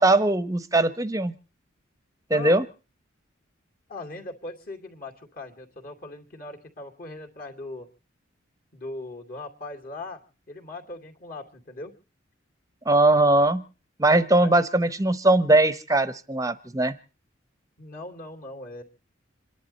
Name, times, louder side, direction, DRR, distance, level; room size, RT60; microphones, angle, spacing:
voice 1, 0.0-1.3 2.3-2.6 12.9-13.6 14.0-16.9, right 2 dB, 15° right, 14 dB, 0.9 m, -20 dB
voice 2, 2.3-2.6 3.9-7.9 8.7-10.2 10.5-11.9 14.3-14.5 17.8-18.8, left 2 dB, 45° left, 5 dB, 2.7 m, -39 dB
27.0 x 11.0 x 4.2 m, 0.36 s
head